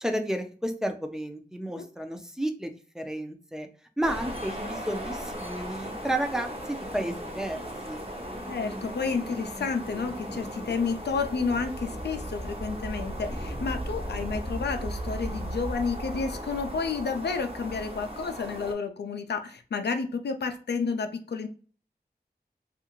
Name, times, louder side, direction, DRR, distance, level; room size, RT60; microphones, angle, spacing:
voice 1, 0.0-3.7 4.0-7.6 7.8-8.0, right 1 dB, 5° right, 4 dB, 0.5 m, -32 dB
sound 1, 4.0-18.7, equal, 35° right, 0.7 m, -36 dB
voice 2, 8.5-21.5, left 5 dB, 75° left, 7 dB, 0.4 m, -31 dB
2.7 x 2.4 x 2.9 m, 0.40 s
wide cardioid pair, 90°, 17 cm